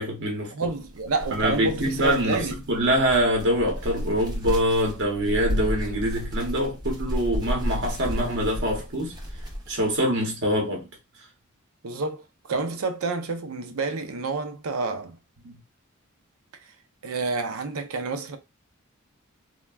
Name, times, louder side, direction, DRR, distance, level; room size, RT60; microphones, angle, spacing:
voice 1, 0.0-0.7 1.3-9.2 9.7-10.8 15.4-15.6, equal, 60° right, 0.9 m, -25 dB
voice 2, 0.5-2.6 11.8-15.2 17.0-18.4, right 3 dB, 85° right, 0.6 m, -29 dB
sound 1, 0.6-9.9, equal, 20° right, 0.7 m, -32 dB
3.2 x 2.2 x 2.3 m
head